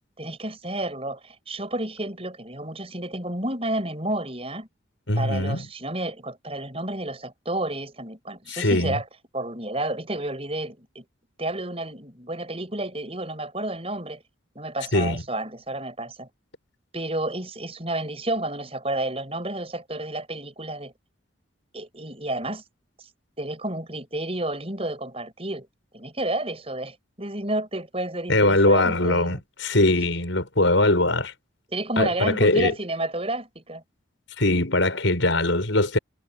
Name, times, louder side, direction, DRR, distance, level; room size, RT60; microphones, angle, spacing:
voice 1, 0.2-4.7 5.2-9.0 9.3-11.0 11.4-14.2 14.5-16.3 16.9-20.9 21.7-22.6 23.4-25.7 25.9-29.4 31.7-33.8, right 1 dB, 30° right, 6.3 m, -31 dB
voice 2, 5.1-5.6 8.5-9.0 14.9-15.2 28.3-31.3 32.0-32.7 34.4-36.0, left 2 dB, 75° left, 5.7 m, -21 dB
head